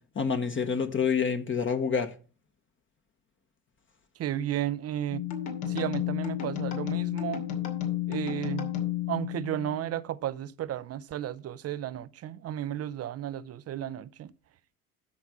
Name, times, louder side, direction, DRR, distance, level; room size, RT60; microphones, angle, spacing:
voice 1, 0.1-2.1, left 6 dB, 25° left, 1.1 m, -27 dB
voice 2, 4.2-5.2 5.7-7.4 8.1-8.7 9.1-14.3, right 11 dB, 35° right, 0.6 m, -33 dB
sound 1, 5.1-9.9, left 11 dB, 70° left, 2.6 m, -32 dB
13.0 x 4.6 x 6.0 m
hypercardioid pair, 75°, 46 cm